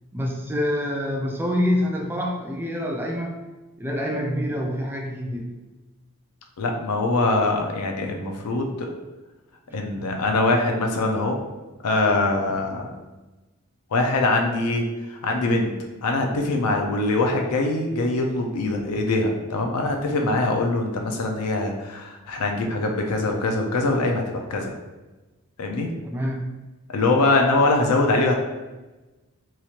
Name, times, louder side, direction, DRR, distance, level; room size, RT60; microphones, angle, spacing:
voice 1, 0.1-3.4 3.8-5.5 9.7-9.8 26.0-26.6, left 1 dB, 10° right, 0 dB, 0.3 m, -26 dB
voice 2, 6.6-8.9 9.7-11.4 11.8-12.9 13.9-15.7 16.0-24.7 25.6-25.9 26.9-28.3, left 2 dB, 85° left, 2 dB, 0.5 m, -23 dB
3.0 x 2.8 x 2.4 m, 1.1 s
head